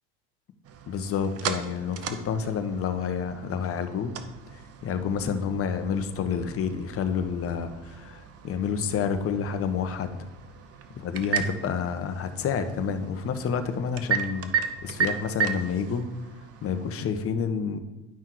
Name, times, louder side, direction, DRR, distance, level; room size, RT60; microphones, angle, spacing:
sound 1, 0.6-17.0, right 7 dB, 40° right, 1.1 m, -35 dB
voice 1, 0.9-4.1 4.5-10.3 11.0-14.5 14.8-16.1 16.6-17.8, left 6 dB, 40° left, 9 dB, 1.2 m, -29 dB
11.0 x 5.7 x 4.7 m, 1.1 s
hypercardioid pair, 85°, 35 cm